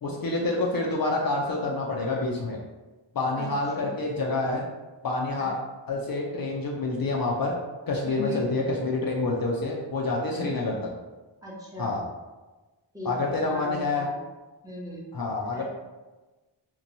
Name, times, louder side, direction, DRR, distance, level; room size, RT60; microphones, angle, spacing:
voice 1, 0.0-2.6 3.1-4.7 5.0-5.6 5.9-7.5 7.9-10.9 11.8-12.0 13.0-14.1 15.1-15.6, left 2 dB, 50° left, -2 dB, 0.4 m, -27 dB
voice 2, 8.0-8.5 10.3-10.9 11.4-12.0 12.9-14.2 14.6-15.1 15.5-15.6, left 2 dB, 10° right, -5 dB, 0.7 m, -38 dB
2.9 x 2.2 x 2.6 m, 1.2 s
wide cardioid pair, 85°, 46 cm